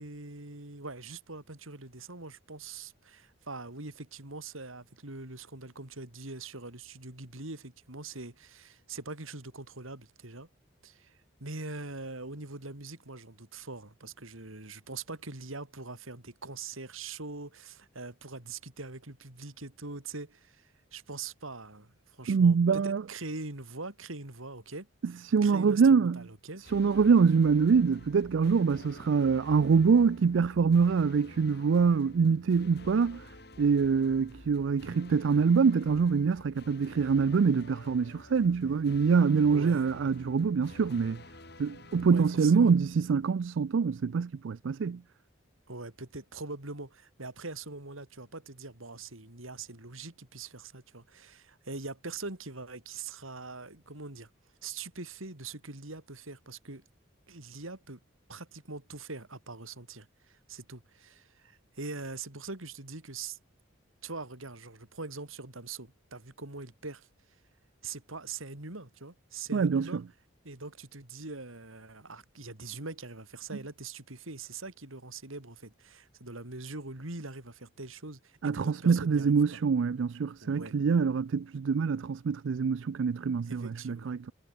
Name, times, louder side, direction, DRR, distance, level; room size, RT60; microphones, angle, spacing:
voice 1, 0.0-10.5 10.8-24.9 25.4-26.6 39.5-39.9 42.1-42.7 45.7-54.3 54.6-56.8 57.3-58.0 58.3-63.4 64.0-67.1 67.8-70.0 70.4-79.6 80.4-80.8 83.5-84.1, right 3 dB, 85° right, 3.9 m, -43 dB
voice 2, 22.3-23.0 25.2-26.2 26.7-33.3 33.6-41.2 41.6-45.0 69.5-70.0 78.4-84.3, right 5 dB, 70° right, 0.4 m, -25 dB
sound 1, 26.6-43.7, left 1 dB, 50° left, 5.0 m, -50 dB
head